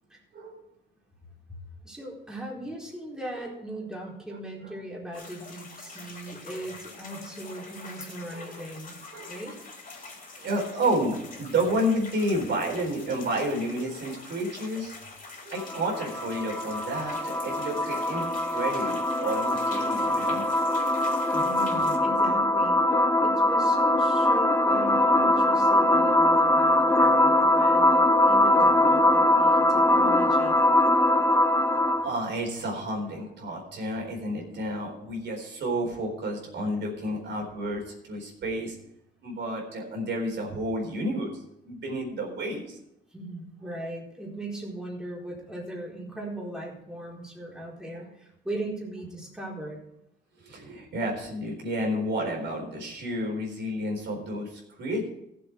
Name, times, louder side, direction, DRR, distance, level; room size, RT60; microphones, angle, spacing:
voice 1, 1.8-8.9 9.3-9.6 21.3-30.6 43.1-49.8, right 1 dB, 5° right, -4 dB, 4.3 m, -38 dB
sound 1, 5.1-22.0, left 3 dB, 40° left, 3.7 m, -45 dB
voice 2, 8.1-8.6 9.1-9.4 10.4-15.0 15.4-18.3 18.5-20.4 23.4-23.5 24.3-24.4 30.6-30.7 31.3-31.5 32.0-38.7 39.2-42.8 47.9-48.0 50.4-55.1, right 1 dB, 65° right, 0 dB, 4.3 m, -31 dB
sound 2, 15.5-32.2, left 1 dB, 15° left, 0.6 m, -22 dB
15.0 x 7.5 x 4.8 m, 0.82 s
cardioid pair, 90°, 20 cm